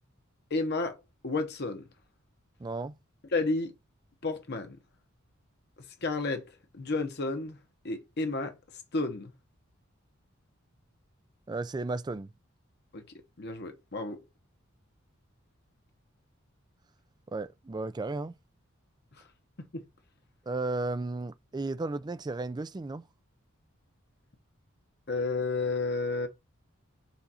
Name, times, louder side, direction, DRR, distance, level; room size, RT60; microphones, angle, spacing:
voice 1, 0.5-1.0 1.2-1.9 3.3-3.7 4.2-4.8 6.0-7.6 7.8-8.5 8.9-9.3 12.9-13.0 13.4-14.2 19.7-19.8 25.1-26.3, left 3 dB, 55° left, 1.0 m, -31 dB
voice 2, 2.6-2.9 11.5-12.3 17.3-18.3 20.5-23.0, right 2 dB, 20° right, 0.3 m, -34 dB
7.0 x 2.5 x 5.5 m
head